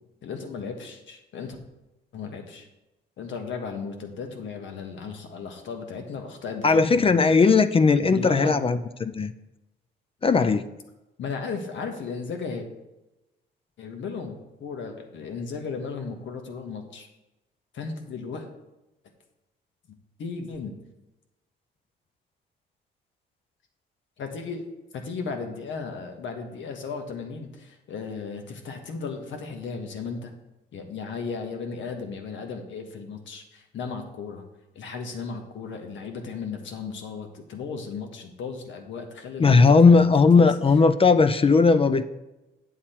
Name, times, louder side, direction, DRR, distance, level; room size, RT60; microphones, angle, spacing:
voice 1, 0.2-1.6 2.1-2.7 3.2-7.1 8.0-8.5 11.2-12.7 13.8-17.1 17.7-18.5 20.2-20.8 24.2-24.6 24.9-30.3 30.7-34.5 34.7-40.1 40.3-40.5, left 5 dB, 70° left, 5 dB, 1.4 m, -35 dB
voice 2, 6.6-9.3 10.2-10.7 39.4-42.0, left 4 dB, 30° left, 12 dB, 0.5 m, -18 dB
8.4 x 7.3 x 4.4 m, 0.99 s
cardioid pair, 90°, 20 cm